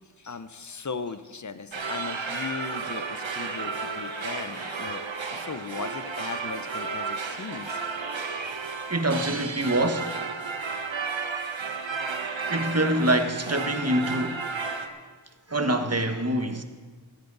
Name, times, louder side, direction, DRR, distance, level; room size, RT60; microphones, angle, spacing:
voice 1, 0.2-5.0 5.3-7.8, left 5 dB, 40° left, 0.8 m, -37 dB
sound 1, 1.7-14.9, right 4 dB, 75° right, 1.1 m, -33 dB
voice 2, 8.9-10.3 12.5-14.5 15.5-16.6, right 1 dB, 30° right, 1.2 m, -26 dB
16.0 x 14.0 x 4.0 m
wide cardioid pair, 45°, 46 cm